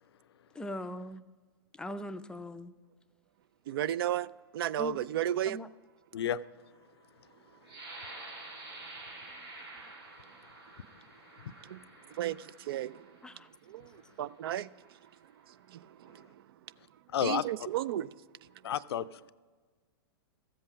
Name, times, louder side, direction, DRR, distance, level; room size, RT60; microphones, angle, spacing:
voice 1, 0.6-1.2 1.8-2.7 4.8-5.0 5.5-5.7 13.2-13.5, left 1 dB, 5° left, 0.4 m, -40 dB
voice 2, 3.7-5.6 8.8-8.9 11.6-11.8 12.1-15.0 15.5-16.4 17.2-18.2, right 12 dB, 70° right, 0.4 m, -35 dB
sound 1, 7.6-13.3 14.0-14.1 14.6-15.0, right 2 dB, 85° right, 3.6 m, -49 dB
voice 3, 17.1-17.4 18.6-19.3, left 10 dB, 80° left, 0.5 m, -31 dB
14.0 x 7.8 x 5.0 m
hypercardioid pair, 120°, 13 cm